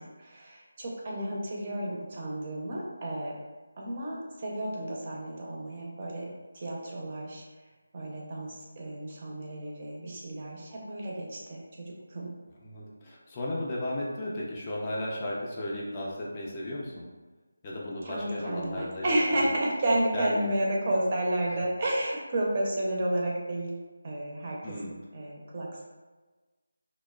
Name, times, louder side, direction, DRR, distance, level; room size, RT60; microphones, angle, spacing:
voice 1, 0.0-3.3 3.8-6.3 6.5-7.4 7.9-12.3 18.0-23.7 24.0-24.6 24.9-25.8, right 1 dB, 35° right, -3 dB, 0.5 m, -31 dB
voice 2, 12.6-17.1 17.6-19.5 20.1-20.5 21.5-21.6 24.6-25.0, left 1 dB, 25° left, -5 dB, 0.4 m, -35 dB
2.9 x 2.0 x 2.2 m, 1.3 s
figure-of-eight pair, 165°, 0 cm